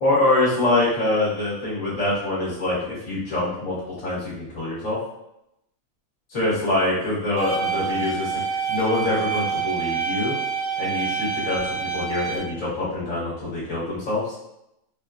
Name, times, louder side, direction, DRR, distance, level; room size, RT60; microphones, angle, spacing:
voice 1, 0.0-3.7 4.0-5.0 6.3-8.3 8.7-10.3 10.8-14.4, left 2 dB, 60° left, -8 dB, 1.6 m, -24 dB
sound 1, 7.4-12.4, right 5 dB, 40° right, 0.8 m, -27 dB
3.6 x 2.2 x 2.4 m, 0.83 s
omnidirectional pair, 1.6 m